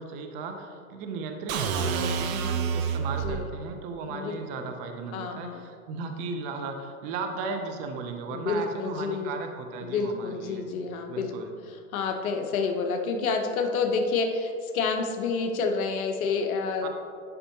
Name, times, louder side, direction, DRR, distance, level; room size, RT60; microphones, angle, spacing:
voice 1, 0.0-10.6 11.1-11.6 16.8-16.9, right 4 dB, 20° right, 5 dB, 0.4 m, -36 dB
sound 1, 1.5-3.4, right 6 dB, 65° right, 0.8 m, -28 dB
voice 2, 5.1-5.6 8.3-9.3 9.8-11.3 11.9-16.9, left 4 dB, 70° left, 4 dB, 0.9 m, -28 dB
10.0 x 5.4 x 2.8 m, 2.3 s
hypercardioid pair, 125°, 43 cm